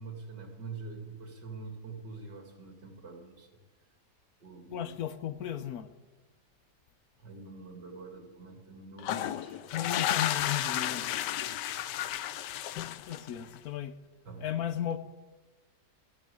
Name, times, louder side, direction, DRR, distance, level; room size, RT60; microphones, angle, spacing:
voice 1, 0.0-3.6 4.4-5.0 7.2-9.9 11.4-11.9 13.3-13.4 14.2-14.4, right 4 dB, 75° right, 2.7 m, -45 dB
voice 2, 4.7-5.9 9.7-11.1 13.1-14.0 14.4-15.0, left 10 dB, 65° left, 1.1 m, -35 dB
sound 1, 9.0-13.5, left 12 dB, 85° left, 1.3 m, -32 dB
13.5 x 10.5 x 8.3 m
omnidirectional pair, 1.8 m